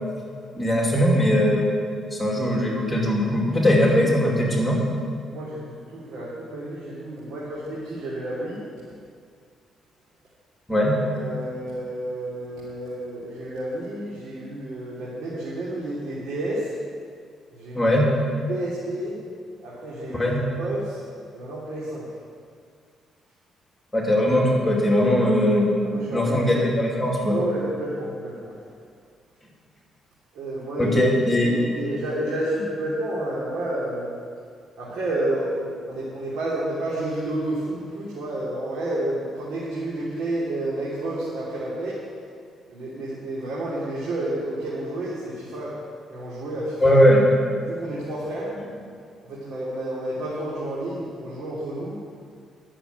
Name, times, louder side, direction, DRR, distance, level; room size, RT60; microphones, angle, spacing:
voice 1, 0.6-1.6 2.1-4.8 10.7-10.9 17.7-18.1 20.1-20.4 23.9-25.7 26.1-27.4 30.8-31.5 46.8-47.3, equal, 15° left, -2 dB, 2.6 m, -20 dB
voice 2, 5.3-8.6 10.7-16.7 17.5-18.0 18.5-19.2 19.6-21.0 21.3-22.1 25.8-26.7 27.3-28.5 30.3-31.0 31.4-34.1 34.8-42.0 42.7-45.8 46.1-47.0 47.6-48.5 49.2-51.9, right 1 dB, 75° right, -7 dB, 3.1 m, -30 dB
11.5 x 7.0 x 9.2 m, 2.1 s
cardioid pair, 90°, 0 cm